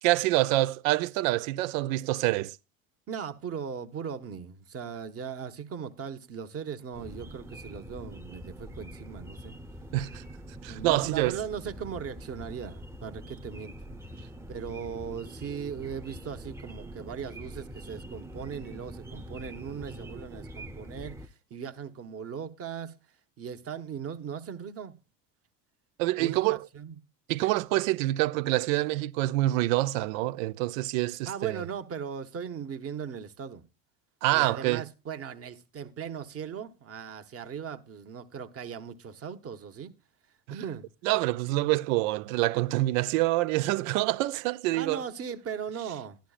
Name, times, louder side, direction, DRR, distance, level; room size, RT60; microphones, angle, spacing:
voice 1, 0.0-2.6 9.9-10.2 10.6-11.4 26.0-26.7 27.3-31.6 34.2-34.8 41.0-45.0, right 17 dB, 80° right, 0.5 m, -26 dB
voice 2, 3.1-9.6 10.7-13.7 14.5-22.9 23.4-25.0 26.2-27.0 31.3-33.6 34.3-39.9 40.5-40.9 44.7-46.2, right 7 dB, 35° right, 1.0 m, -38 dB
sound 1, 6.9-21.3, right 1 dB, 5° right, 0.8 m, -44 dB
11.5 x 11.5 x 2.4 m
supercardioid pair, 85°, 40 cm